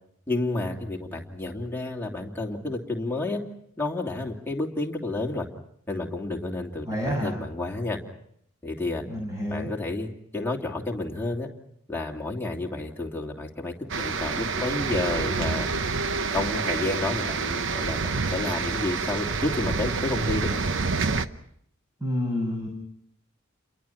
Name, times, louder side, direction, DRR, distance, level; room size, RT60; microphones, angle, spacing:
voice 1, 0.3-3.4 3.8-5.5 5.9-8.0 8.6-9.0 9.5-11.5 11.9-15.7 16.3-20.6, left 2 dB, 10° left, 0 dB, 2.9 m, -30 dB
voice 2, 6.9-7.3 9.1-9.7 22.0-22.7, equal, 15° right, 0 dB, 6.2 m, -28 dB
sound 1, 13.9-21.3, right 4 dB, 60° right, 0.9 m, -28 dB
29.5 x 23.0 x 5.8 m, 0.71 s
head